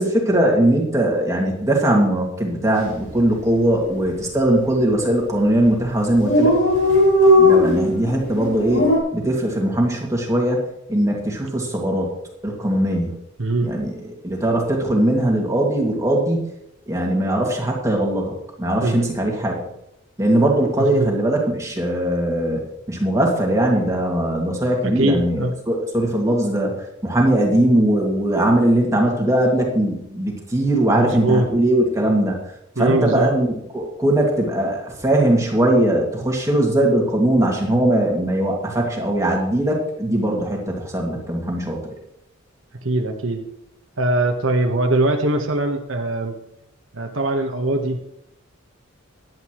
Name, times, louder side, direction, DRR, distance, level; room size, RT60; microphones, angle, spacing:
voice 1, 0.0-6.6 7.4-12.2 12.4-13.2 13.6-13.9 14.2-16.4 16.9-19.7 20.2-32.4 32.8-41.8, right 1 dB, 15° right, 0 dB, 2.2 m, -20 dB
Dog, 2.8-3.0 3.3-3.4 3.6-4.3 5.0-5.2 5.5-5.6 5.8-5.9 6.0-9.0, left 1 dB, 75° left, 5.3 m, -17 dB
voice 2, 13.4-13.7 18.8-19.1 20.8-21.1 24.8-25.5 30.9-31.5 32.8-33.3 42.8-43.4 44.0-46.4 46.9-48.0, right 2 dB, 75° right, 3 dB, 1.3 m, -21 dB
15.5 x 11.0 x 3.1 m, 0.81 s
head